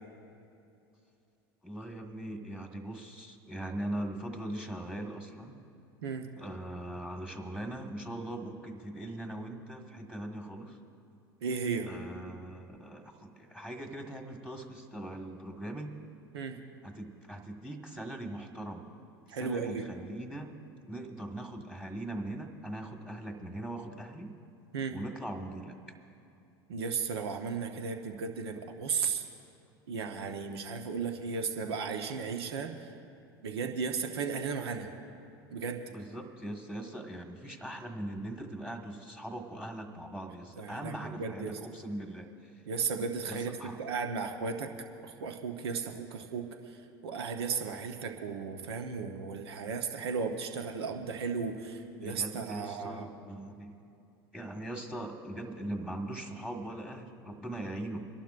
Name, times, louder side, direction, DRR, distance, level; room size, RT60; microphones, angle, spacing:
voice 1, 1.6-5.6 6.4-10.8 11.9-15.9 16.8-18.8 19.3-20.5 20.9-24.3 24.9-25.8 35.9-42.5 43.3-43.8 52.0-53.8 54.3-58.0, right 1 dB, 5° right, 3 dB, 1.5 m, -40 dB
voice 2, 11.4-11.9 16.3-16.6 19.3-19.8 24.7-24.9 26.7-29.2 29.9-32.9 33.4-34.9 35.5-35.8 40.6-41.6 42.7-44.7 45.0-53.1, right 5 dB, 80° right, 5 dB, 1.0 m, -35 dB
29.0 x 11.5 x 2.5 m, 2.7 s
hypercardioid pair, 85°, 13 cm